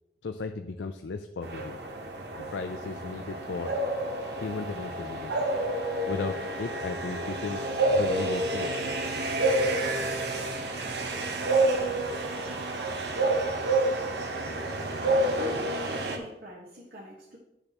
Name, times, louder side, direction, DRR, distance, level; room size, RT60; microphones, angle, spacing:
voice 1, 0.2-1.8 2.4-3.7 4.3-5.3 6.1-7.6 7.9-8.7, left 4 dB, 90° left, 7 dB, 0.5 m, -35 dB
sound 1, 1.4-16.2, right 2 dB, 75° right, 1.0 m, -29 dB
voice 2, 15.3-17.4, left 1 dB, 55° right, -5 dB, 1.4 m, -43 dB
10.0 x 6.5 x 3.0 m, 0.90 s
head